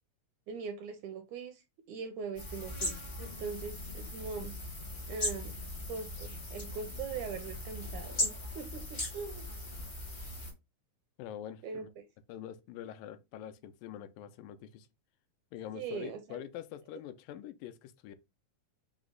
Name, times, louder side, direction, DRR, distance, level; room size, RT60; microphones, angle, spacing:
voice 1, 0.5-4.5 5.1-5.5 5.9-9.5 11.6-12.0 15.7-16.4, right 5 dB, 80° right, 1.8 m, -41 dB
sound 1, 2.3-10.5, left 1 dB, 55° left, 0.5 m, -39 dB
voice 2, 11.2-11.9 12.3-14.9 15.5-18.2, left 11 dB, 85° left, 2.2 m, -45 dB
5.7 x 2.1 x 3.7 m
omnidirectional pair, 3.8 m